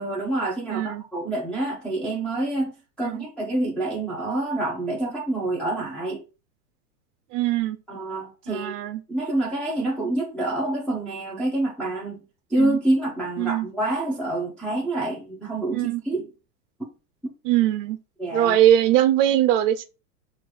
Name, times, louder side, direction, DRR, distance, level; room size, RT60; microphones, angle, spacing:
voice 1, 0.0-6.2 7.9-8.7 9.1-12.2 12.5-16.3 18.2-18.6, right 2 dB, ahead, 0.6 m, -27 dB
voice 2, 0.7-1.0 3.0-3.3 7.3-7.8 8.5-9.0 12.5-12.8 13.4-13.7 15.7-16.0 17.4-18.0 18.3-19.8, right 12 dB, 55° right, 0.5 m, -21 dB
4.4 x 2.5 x 3.1 m
hypercardioid pair, 125°, 47 cm